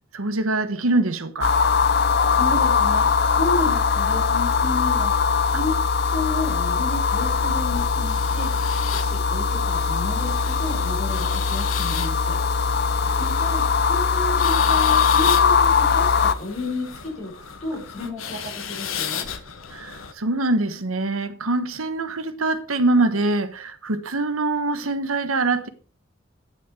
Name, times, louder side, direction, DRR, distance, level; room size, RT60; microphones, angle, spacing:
voice 1, 0.1-1.6 19.7-25.7, right 2 dB, 90° right, 1.2 m, -24 dB
sound 1, 1.4-16.3, left 5 dB, 50° left, 0.6 m, -21 dB
voice 2, 2.3-5.8 6.0-12.4 13.2-17.4 17.6-19.3, left 2 dB, 30° left, 5.9 m, -32 dB
sound 2, 7.2-20.1, left 8 dB, 80° left, 1.3 m, -35 dB
9.5 x 9.1 x 4.8 m
head